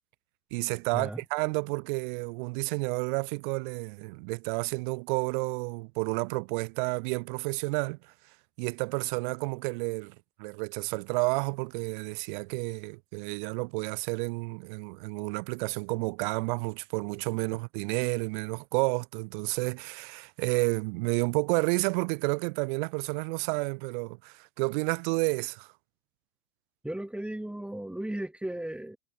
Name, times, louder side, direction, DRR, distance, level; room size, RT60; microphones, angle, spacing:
voice 1, 0.5-8.1 8.6-25.7, right 29 dB, 55° right, 0.8 m, -31 dB
voice 2, 26.8-29.0, right 1 dB, 5° right, 2.9 m, -35 dB
hypercardioid pair, 100°, 30 cm